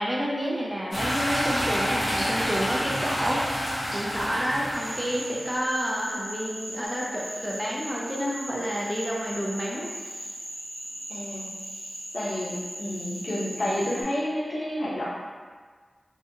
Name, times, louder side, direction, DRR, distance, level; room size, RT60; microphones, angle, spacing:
voice 1, 0.0-3.4 3.9-9.9, equal, 10° right, -4 dB, 0.4 m, -29 dB
sound 1, 0.9-5.4, equal, 40° left, 1.1 m, -28 dB
Cricket / Frog, 4.7-14.0, equal, 60° right, 1.0 m, -39 dB
voice 2, 11.1-11.5 12.1-15.1, left 1 dB, 60° left, -7 dB, 0.7 m, -30 dB
2.8 x 2.2 x 2.7 m, 1.5 s
wide cardioid pair, 90°, 0 cm